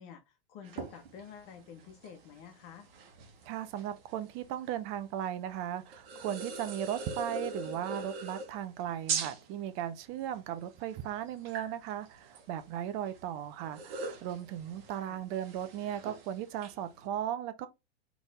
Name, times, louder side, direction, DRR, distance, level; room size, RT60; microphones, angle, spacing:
voice 1, 0.0-2.9 15.0-15.2, left 7 dB, 45° left, 1.2 m, -50 dB
sound 1, 0.6-17.1, right 4 dB, 65° right, 1.4 m, -43 dB
voice 2, 3.4-17.7, right 10 dB, 45° right, 0.9 m, -37 dB
4.1 x 3.5 x 3.6 m
hypercardioid pair, 95°, 31 cm